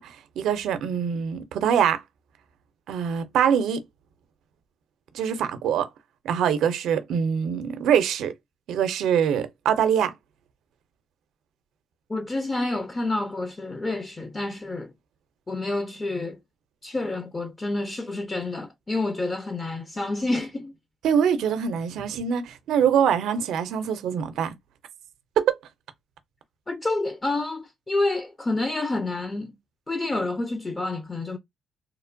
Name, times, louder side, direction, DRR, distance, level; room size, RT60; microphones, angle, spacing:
voice 1, 0.0-2.0 2.9-3.8 5.1-5.9 6.2-8.3 8.7-10.1 21.0-24.5 25.4-25.5, right 8 dB, 80° right, 0.4 m, -24 dB
voice 2, 12.1-14.9 15.5-16.4 16.8-20.7 26.7-29.5 29.9-31.4, left 2 dB, 25° left, 0.4 m, -28 dB
2.8 x 2.1 x 2.5 m
cardioid pair, 90°, 0 cm